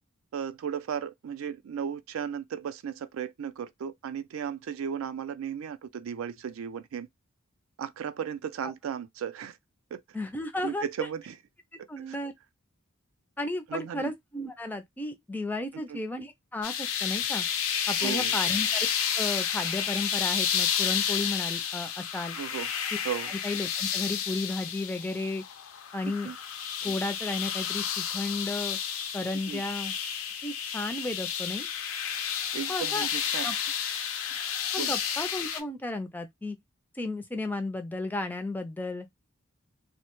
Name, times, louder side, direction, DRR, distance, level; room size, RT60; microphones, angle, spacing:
voice 1, 0.3-7.1 7.8-9.6 9.9-10.0 10.6-11.4 12.0-12.2 13.7-14.1 15.9-16.0 18.0-18.4 22.4-22.7 23.0-23.3 26.2-26.4 29.5-29.6 32.5-33.5 34.8-35.0, right 8 dB, 75° right, 0.3 m, -35 dB
voice 2, 10.1-10.8 11.7-12.3 13.4-17.5 17.9-18.9 19.1-22.4 23.3-25.4 25.9-26.3 26.8-28.8 29.1-29.9 30.4-31.7 32.7-33.1 33.4-33.6 34.7-36.6 37.0-39.1, left 2 dB, 10° left, 0.3 m, -33 dB
sound 1, 16.6-35.6, left 8 dB, 85° left, 0.5 m, -31 dB
2.1 x 2.0 x 2.9 m
head